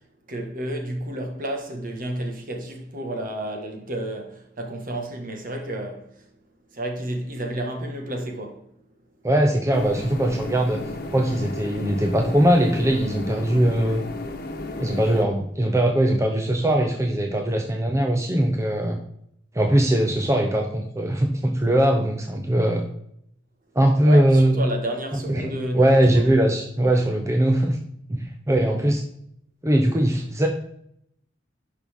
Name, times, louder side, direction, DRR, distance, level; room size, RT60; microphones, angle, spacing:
voice 1, 0.3-6.1 6.7-8.6 24.0-26.2, right 1 dB, 50° right, 1.6 m, -31 dB
voice 2, 9.2-10.8 11.1-14.0 14.8-19.0 19.5-22.9 23.7-24.6 25.1-27.8 28.1-29.0 29.6-30.5, right 1 dB, 15° right, 0.7 m, -21 dB
sound 1, 9.7-15.3, left 2 dB, 55° left, 1.2 m, -34 dB
11.0 x 5.5 x 3.6 m
head